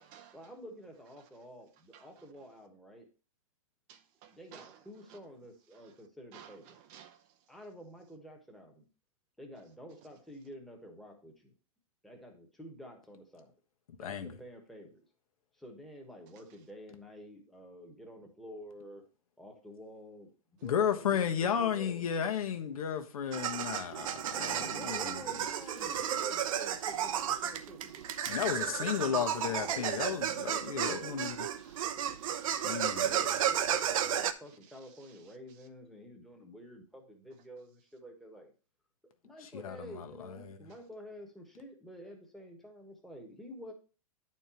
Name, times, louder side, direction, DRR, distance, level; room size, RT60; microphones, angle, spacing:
voice 1, 0.3-3.1 4.3-6.8 7.5-8.9 9.4-11.5 12.0-13.5 14.0-15.0 15.5-19.0 19.4-20.3 20.6-22.1 24.6-28.0 28.5-30.6 30.8-31.1 33.0-38.5 39.2-43.7, equal, ahead, 1.3 m, -49 dB
voice 2, 3.9-4.7 6.3-6.5 6.9-7.2 31.6-32.8, right 9 dB, 35° right, 0.6 m, -55 dB
voice 3, 14.0-14.3 20.6-25.2 28.3-31.4 32.6-33.1 39.4-40.6, left 8 dB, 75° left, 1.3 m, -33 dB
sound 1, 23.3-34.3, right 9 dB, 65° right, 0.7 m, -33 dB
9.6 x 4.5 x 4.4 m
hypercardioid pair, 150°, 18 cm